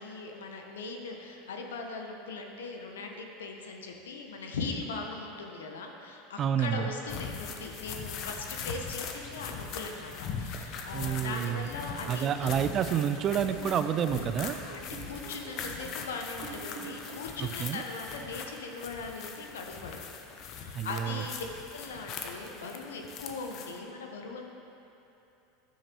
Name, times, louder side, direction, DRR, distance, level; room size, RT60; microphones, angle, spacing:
voice 1, 0.0-12.5 14.2-14.3 14.6-20.0 20.4-21.4 21.7-24.6, left 3 dB, 85° left, 3 dB, 0.8 m, -40 dB
voice 2, 6.4-6.9 10.9-11.7 12.1-14.6 17.6-17.8 20.7-21.2, right 9 dB, 40° right, 10 dB, 0.3 m, -29 dB
sound 1, 7.1-23.8, left 6 dB, 50° left, 0.7 m, -41 dB
sound 2, 11.3-17.4 17.8-19.1, right 5 dB, 60° right, 0.9 m, -48 dB
10.0 x 6.7 x 2.9 m, 2.8 s
hypercardioid pair, 95°, 0 cm